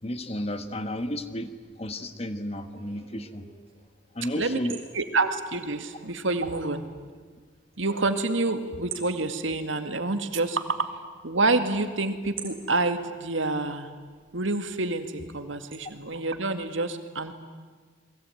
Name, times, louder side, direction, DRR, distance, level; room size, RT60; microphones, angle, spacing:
voice 1, 0.0-3.5 4.1-4.8, left 1 dB, 30° left, 10 dB, 1.3 m, -32 dB
sound 1, 1.5-16.2, right 7 dB, 30° right, 4.3 m, -50 dB
voice 2, 4.9-6.8 7.8-11.0 11.2-13.9 14.3-17.3, right 3 dB, 75° right, 8 dB, 2.1 m, -27 dB
29.5 x 21.5 x 9.2 m, 1.5 s
head